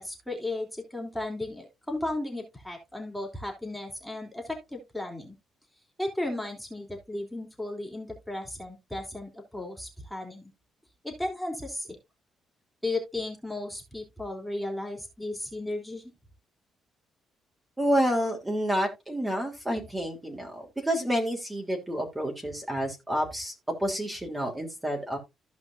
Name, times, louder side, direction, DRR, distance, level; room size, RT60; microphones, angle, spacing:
voice 1, 0.0-5.3 6.0-10.5 11.0-12.0 12.8-16.0, left 2 dB, 5° left, 2 dB, 3.2 m, -35 dB
voice 2, 17.8-23.5 23.8-25.2, equal, 10° right, 1 dB, 3.2 m, -29 dB
15.0 x 5.3 x 2.6 m, 0.22 s
cardioid pair, 90°, 0 cm